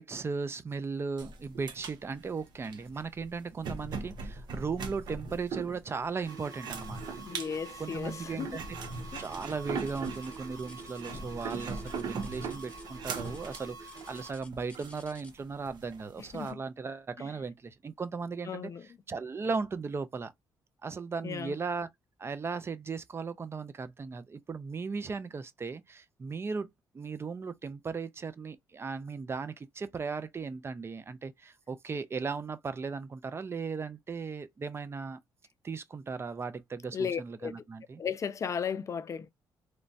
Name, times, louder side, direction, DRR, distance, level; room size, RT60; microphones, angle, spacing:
voice 1, 0.0-7.2 7.8-8.8 9.2-20.3 20.8-21.9 22.2-26.7 26.9-35.2 35.6-38.0, right 4 dB, 35° right, 0.5 m, -37 dB
sound 1, 1.2-16.5, right 4 dB, 70° right, 0.7 m, -40 dB
sound 2, 6.3-14.3, right 3 dB, 55° right, 1.4 m, -47 dB
voice 2, 7.3-8.6 9.1-9.2 11.0-11.2 16.3-16.6 17.2-17.3 18.5-18.9 21.2-21.6 36.9-37.5 38.0-39.3, left 7 dB, 45° left, 0.4 m, -35 dB
sound 3, 9.1-15.5 16.5-16.7 17.3-17.4 18.1-18.2, left 2 dB, 15° left, 0.8 m, -56 dB
3.1 x 2.1 x 2.5 m
supercardioid pair, 70°, 8 cm